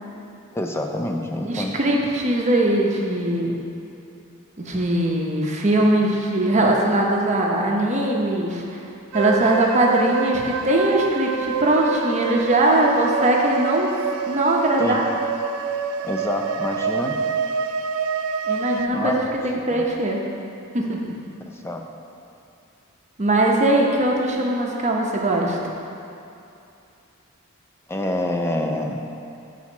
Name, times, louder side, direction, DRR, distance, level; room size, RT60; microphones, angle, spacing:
voice 1, 0.5-1.7 14.8-15.0 16.0-17.2 18.9-19.4 19.8-19.9 21.5-21.8 27.9-29.0, left 1 dB, 10° left, 3 dB, 0.4 m, -26 dB
voice 2, 1.4-3.6 4.6-8.8 9.1-13.9 14.2-15.0 18.5-19.2 19.7-20.2 20.7-21.1 23.2-25.6, right 1 dB, 35° right, -1 dB, 0.7 m, -20 dB
sound 1, 9.1-18.9, right 6 dB, 70° right, 0.3 m, -27 dB
6.2 x 4.2 x 6.0 m, 2.7 s
head